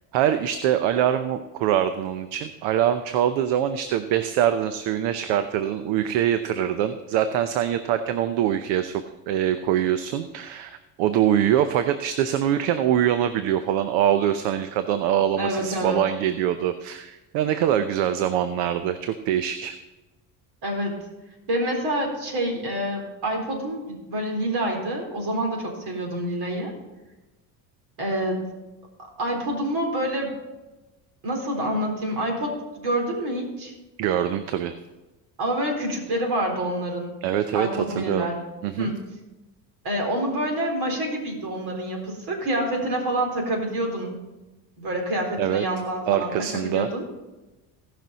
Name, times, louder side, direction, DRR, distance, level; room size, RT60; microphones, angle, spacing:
voice 1, 0.1-19.8 34.0-34.8 37.2-38.3 38.6-38.9 45.4-45.6 46.1-46.9, right 10 dB, 70° right, 10 dB, 0.8 m, -24 dB
voice 2, 15.4-16.0 20.6-21.1 21.5-26.7 28.0-28.4 29.2-30.3 31.2-33.7 35.4-37.2 37.5-38.4 38.8-39.0 39.8-44.2 44.8-47.0, right 1 dB, 55° right, 1 dB, 4.1 m, -27 dB
17.5 x 6.2 x 4.1 m, 1.1 s
supercardioid pair, 85°, 47 cm